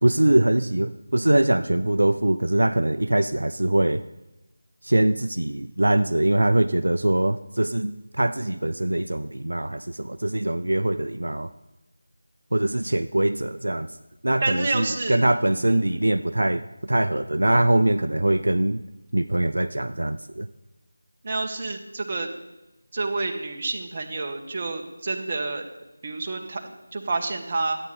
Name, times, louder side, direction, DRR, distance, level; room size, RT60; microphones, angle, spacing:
voice 1, 0.0-4.0 4.8-7.9 8.2-11.5 12.5-13.9 14.2-18.8 19.1-20.5, right 1 dB, 80° right, 9 dB, 0.4 m, -22 dB
voice 2, 14.4-15.2 15.5-15.8 21.2-22.3 22.9-25.6 26.0-27.8, right 3 dB, 35° right, 3 dB, 1.1 m, -29 dB
11.5 x 8.9 x 4.2 m, 1.0 s
figure-of-eight pair, 165°, 0 cm